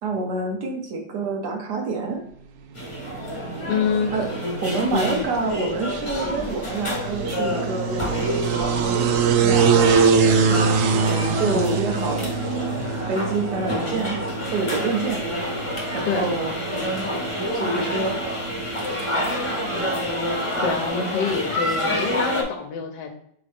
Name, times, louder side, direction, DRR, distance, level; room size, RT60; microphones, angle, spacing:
voice 1, 0.0-2.2 4.1-4.3 4.6-8.8 9.4-9.9 10.2-12.3 13.1-14.2 14.5-15.2 15.9-16.5 17.5-18.2, right 3 dB, 65° right, 2 dB, 1.5 m, -27 dB
sound 1, 2.8-22.4, equal, 25° left, 0.7 m, -28 dB
sound 2, 2.8-20.9, right 5 dB, 85° right, 0.7 m, -25 dB
voice 2, 3.7-4.4 4.9-5.2 11.4-11.7 16.0-16.3 20.6-23.1, left 5 dB, 75° left, 3 dB, 1.2 m, -26 dB
4.1 x 3.7 x 3.4 m, 0.70 s
omnidirectional pair, 2.0 m